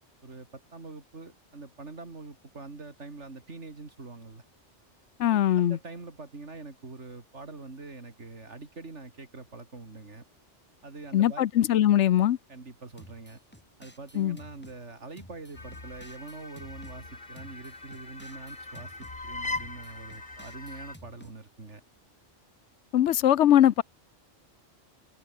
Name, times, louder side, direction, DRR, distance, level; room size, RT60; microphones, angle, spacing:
voice 1, 0.2-4.4 5.3-10.2 10.8-11.4 12.5-13.4 13.8-21.8, right 3 dB, 75° right, 3.4 m, -44 dB
voice 2, 5.2-5.8 11.1-12.4 14.2-14.4 22.9-23.8, left 11 dB, 75° left, 1.0 m, -21 dB
sound 1, 13.0-14.8 15.2-17.0 17.4-19.2 19.6-21.4, equal, 10° left, 4.5 m, -52 dB
sound 2, 15.5-21.0, left 2 dB, 40° left, 3.0 m, -40 dB
omnidirectional pair, 1.2 m